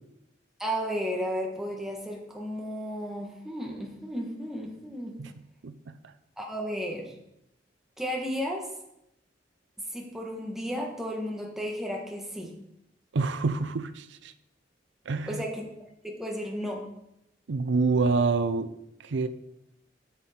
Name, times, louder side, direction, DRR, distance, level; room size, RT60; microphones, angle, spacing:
voice 1, 0.6-5.2 6.4-7.1 8.0-8.7 9.8-12.5 15.3-15.6 16.0-16.9, equal, ahead, -1 dB, 1.4 m, -33 dB
voice 2, 5.6-6.0 13.1-14.3 15.1-15.4 17.5-18.7 19.0-19.3, right 4 dB, 80° right, 11 dB, 0.5 m, -27 dB
8.6 x 7.3 x 4.3 m, 0.83 s
head